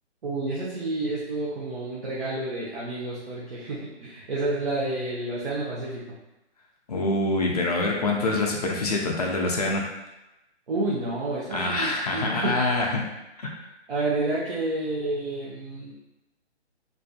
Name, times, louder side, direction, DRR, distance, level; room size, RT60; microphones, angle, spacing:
voice 1, 0.2-6.2 10.7-12.6 13.9-15.9, right 2 dB, 50° right, -7 dB, 0.7 m, -30 dB
voice 2, 6.9-9.8 11.5-13.0 13.4-13.5, left 2 dB, 35° left, -1 dB, 0.4 m, -25 dB
2.5 x 2.5 x 2.3 m, 0.95 s
hypercardioid pair, 145°, 35 cm